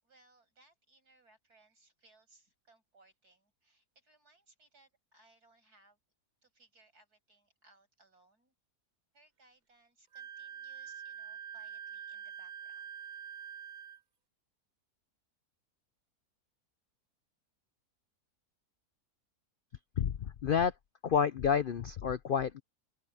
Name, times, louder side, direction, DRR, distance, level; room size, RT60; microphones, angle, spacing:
voice 1, 0.0-6.0 6.4-8.5 9.1-12.9, right 2 dB, 75° right, 7.8 m, -66 dB
Wind instrument woodwind instrument, 10.1-14.0, right 8 dB, 35° right, 0.9 m, -45 dB
voice 2, 20.0-20.7 21.0-22.6, left 7 dB, 60° left, 0.5 m, -29 dB
open air
omnidirectional pair, 1.7 m